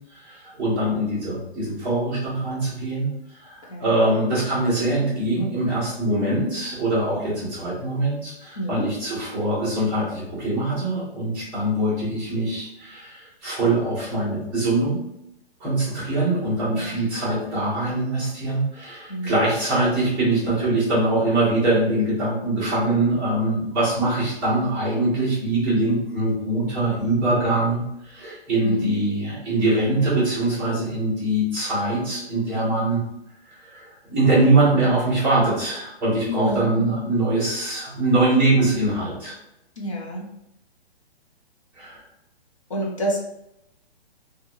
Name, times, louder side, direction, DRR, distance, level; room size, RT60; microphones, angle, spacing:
voice 1, 0.1-3.1 3.4-15.0 15.6-27.8 28.1-33.0 33.6-39.3 41.8-42.0, right 2 dB, 5° right, -12 dB, 0.7 m, -23 dB
voice 2, 8.6-8.9 16.7-17.0 19.1-19.3 28.6-29.0 36.3-37.0 39.8-40.2 42.7-43.2, equal, 30° left, -1 dB, 0.5 m, -29 dB
3.0 x 2.3 x 2.6 m, 0.82 s
hypercardioid pair, 170°, 32 cm